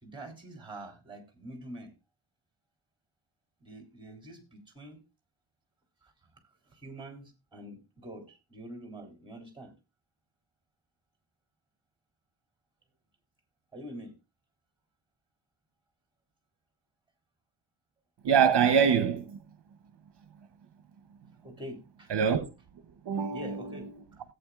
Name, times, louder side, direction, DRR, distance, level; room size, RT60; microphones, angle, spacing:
voice 1, 0.0-1.9 3.6-5.0 6.0-6.1 6.7-9.7 13.7-14.1 21.4-22.1 23.3-24.2, right 1 dB, 10° right, 3.2 m, -45 dB
voice 2, 18.2-19.4 22.1-22.5 23.1-23.9, right 7 dB, 60° right, 0.9 m, -24 dB
17.0 x 8.7 x 2.3 m
wide cardioid pair, 160°, 47 cm